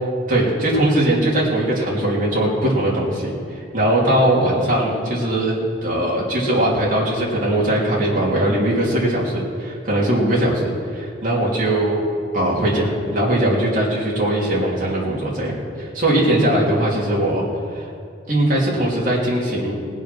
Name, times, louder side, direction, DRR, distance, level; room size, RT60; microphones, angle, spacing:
voice 1, 0.3-12.0 12.3-17.4 17.7-17.9 18.3-19.8, right 1 dB, 45° right, -5 dB, 3.1 m, -20 dB
19.0 x 7.1 x 6.1 m, 2.4 s
head